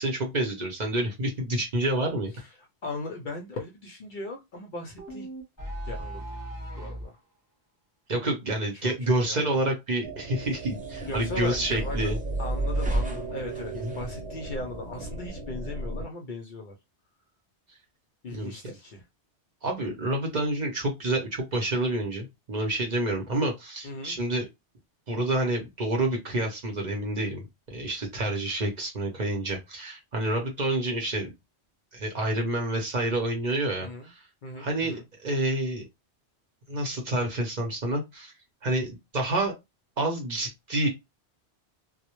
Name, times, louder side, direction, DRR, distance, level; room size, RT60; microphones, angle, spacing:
voice 1, 0.0-2.3 8.1-12.2 13.7-13.9 18.3-18.5 19.6-24.4 25.1-31.3 31.9-34.2 34.6-35.9 36.7-38.3 38.6-39.5 40.0-40.9, right 1 dB, 50° right, 0.7 m, -28 dB
voice 2, 2.3-5.3 5.8-6.2 6.7-7.2 8.7-8.9 9.2-9.6 11.1-12.1 12.4-16.8 18.2-19.0 23.8-24.1 33.8-34.1 34.4-35.0, left 2 dB, 55° left, 0.6 m, -38 dB
sound 1, 5.0-7.1, right 1 dB, 20° left, 0.7 m, -37 dB
sound 2, 10.0-16.1, right 2 dB, 90° right, 1.0 m, -34 dB
sound 3, 10.3-15.3, right 1 dB, 15° right, 0.3 m, -37 dB
2.1 x 2.0 x 2.9 m
omnidirectional pair, 1.1 m